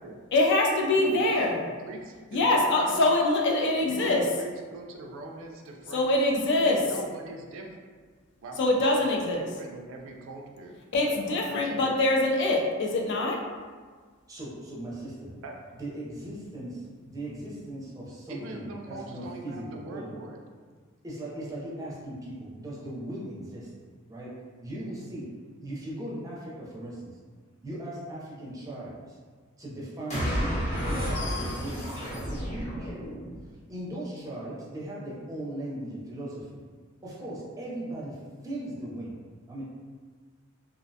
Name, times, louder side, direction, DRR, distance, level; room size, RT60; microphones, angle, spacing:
voice 1, 0.3-1.6 2.3-4.2 5.9-6.9 8.6-9.5 10.9-13.4, left 2 dB, 55° left, 0 dB, 0.4 m, -24 dB
voice 2, 1.0-3.0 3.9-6.1 6.8-7.8 8.4-10.8 11.0-12.0 15.4-15.5 18.3-20.4, right 2 dB, 65° right, 1 dB, 0.3 m, -42 dB
voice 3, 14.3-15.3 15.8-16.7 17.1-20.1 21.0-23.7 24.1-24.3 24.6-25.2 25.6-27.1 27.6-29.2 29.6-32.9 33.7-36.5 37.0-38.2 38.4-39.1 39.5-39.6, right 1 dB, 15° right, -6 dB, 0.6 m, -38 dB
sound 1, 30.1-33.5, equal, 35° left, 0.8 m, -31 dB
2.4 x 2.1 x 2.6 m, 1.5 s
head